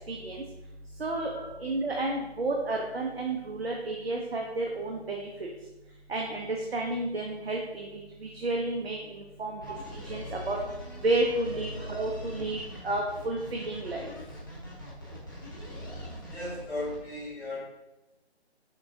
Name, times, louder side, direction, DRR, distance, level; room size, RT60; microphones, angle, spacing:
voice 1, 0.1-0.4 1.0-1.3 1.6-5.5 6.1-9.6 9.9-10.6 11.0-14.1, right 2 dB, 65° right, 1 dB, 0.6 m, -31 dB
sound 1, 9.6-17.0, equal, 20° left, 0.5 m, -42 dB
voice 2, 16.3-17.7, left 1 dB, 65° left, -5 dB, 1.1 m, -36 dB
5.8 x 2.2 x 2.7 m, 1.0 s
figure-of-eight pair, 155°, 33 cm